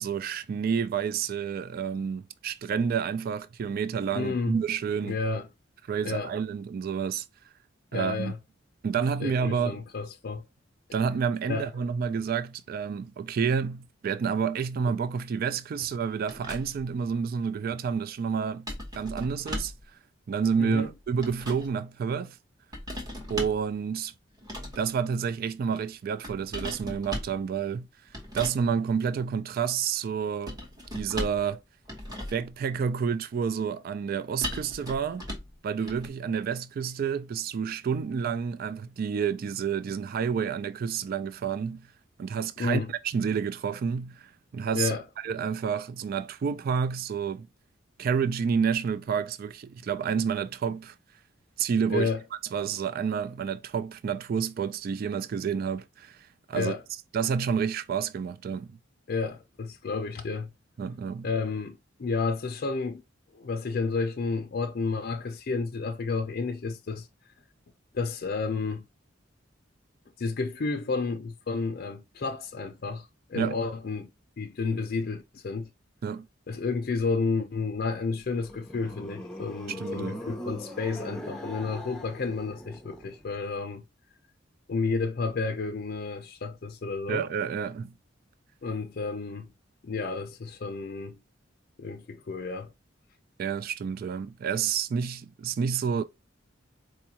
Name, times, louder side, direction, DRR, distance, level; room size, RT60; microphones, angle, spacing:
voice 1, 0.0-5.2 5.9-7.2 7.9-8.3 8.8-9.8 10.9-19.7 20.3-22.4 23.3-24.1 24.8-27.9 28.3-30.6 30.9-31.6 32.3-35.2 35.6-41.9 42.2-44.9 45.2-47.5 48.0-51.0 51.6-52.1 52.5-56.7 57.1-58.7 60.8-61.3 73.3-73.6 76.0-76.3 79.7-80.2 87.1-87.9 93.4-96.0, right 6 dB, 50° right, 0.3 m, -29 dB
voice 2, 4.1-4.6 5.0-5.5 6.0-6.3 7.9-8.4 9.2-10.4 11.5-11.7 20.6-20.9 42.6-42.9 44.7-45.0 51.9-52.2 56.5-56.8 59.1-60.5 61.2-63.0 63.3-67.1 67.9-68.8 70.2-74.1 74.4-75.7 76.5-83.8 84.7-87.3 88.6-89.5 89.8-91.2 91.8-92.7, left 4 dB, 50° left, 0.5 m, -31 dB
sound 1, 16.3-16.9 18.7-19.9 20.9-21.7 22.7-23.7 24.4-24.9 26.2-27.4 28.1-28.6 30.5-31.5 31.9-32.5 34.4-35.6 35.9-36.1, equal, 20° right, 1.0 m, -37 dB
sound 2, 78.2-83.4, left 1 dB, 5° left, 0.6 m, -41 dB
4.4 x 2.3 x 2.8 m
head